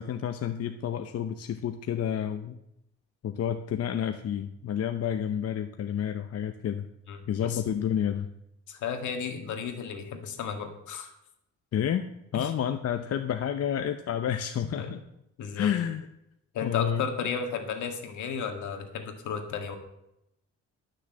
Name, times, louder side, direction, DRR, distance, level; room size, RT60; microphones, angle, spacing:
voice 1, 0.0-2.6 3.2-6.9 7.3-8.3 11.7-12.0 12.3-15.0 15.6-16.1 16.6-17.0, left 9 dB, 55° left, 7 dB, 0.8 m, -30 dB
voice 2, 7.1-7.6 8.7-11.1 12.3-12.5 14.6-15.0 15.4-15.7 16.5-19.8, left 6 dB, 75° left, 5 dB, 2.0 m, -34 dB
12.0 x 6.5 x 7.7 m, 0.82 s
cardioid pair, 90°, 30 cm